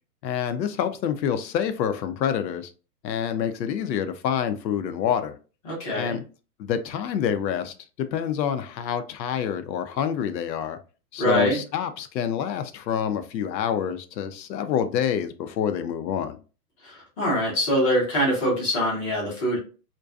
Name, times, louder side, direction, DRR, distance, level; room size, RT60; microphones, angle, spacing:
voice 1, 0.2-2.7 3.0-5.4 6.0-6.2 6.6-10.8 11.1-16.4, left 8 dB, 85° left, 0.6 m, -27 dB
voice 2, 5.6-6.2 11.2-11.6 16.8-19.6, equal, 20° left, 0.6 m, -24 dB
2.5 x 2.2 x 2.3 m
hypercardioid pair, 160°, 50 cm